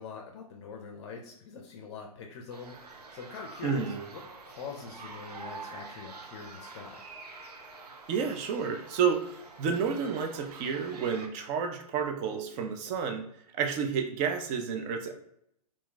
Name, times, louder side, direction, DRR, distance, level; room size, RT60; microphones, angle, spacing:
voice 1, 0.0-4.2 4.5-7.0, left 5 dB, 45° left, 1 dB, 0.5 m, -44 dB
sound 1, 2.5-11.3, right 4 dB, 85° right, 0.5 m, -46 dB
voice 2, 3.6-4.0 8.1-13.2 13.6-15.1, right 6 dB, 30° right, 5 dB, 0.4 m, -30 dB
2.4 x 2.2 x 3.7 m, 0.74 s
figure-of-eight pair, 115°, 20 cm